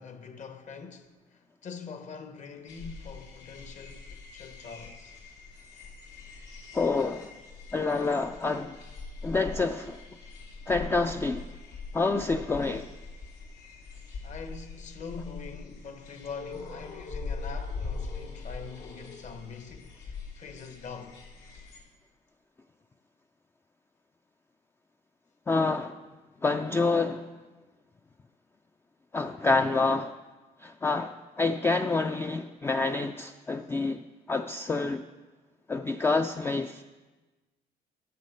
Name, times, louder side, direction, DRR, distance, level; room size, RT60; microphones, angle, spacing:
voice 1, 0.0-5.2 14.2-21.2, left 5 dB, 45° left, 1.0 m, -44 dB
sound 1, 2.7-21.8, left 4 dB, 85° left, 2.9 m, -42 dB
voice 2, 6.7-7.3 7.7-8.8 9.2-10.0 10.7-11.5 11.9-12.9 25.5-26.0 26.4-27.3 29.1-30.2 30.6-35.0 35.7-36.8, left 3 dB, 15° left, 0.3 m, -27 dB
10.5 x 6.3 x 6.4 m
cardioid pair, 110°, 17 cm